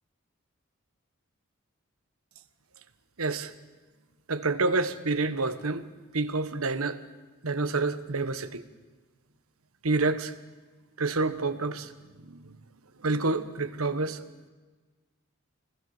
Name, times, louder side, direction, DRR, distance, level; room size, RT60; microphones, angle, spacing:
voice 1, 3.2-3.5 4.3-5.9 6.1-7.0 7.4-8.6 9.8-10.3 11.0-11.9 12.2-12.6 13.0-14.2, right 3 dB, 90° right, 1.4 m, -28 dB
26.0 x 19.5 x 7.1 m
head